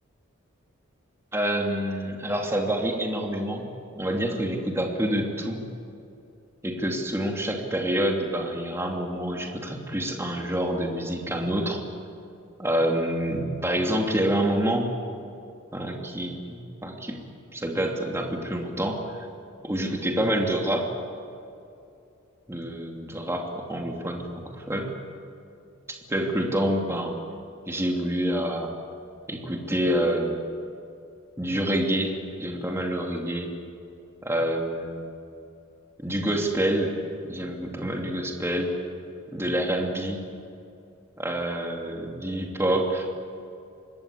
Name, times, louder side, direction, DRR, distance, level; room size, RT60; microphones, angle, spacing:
voice 1, 1.3-5.6 6.6-11.8 12.6-14.9 15.7-17.2 17.5-19.3 19.6-20.9 22.5-24.9 26.1-27.1 27.7-28.7 29.3-30.4 31.4-32.1 32.4-33.5 34.2-35.0 36.0-36.9 37.2-38.8 39.3-40.2 41.2-43.1, right 1 dB, 15° right, 1 dB, 2.7 m, -27 dB
26.0 x 21.0 x 8.5 m, 2.6 s
head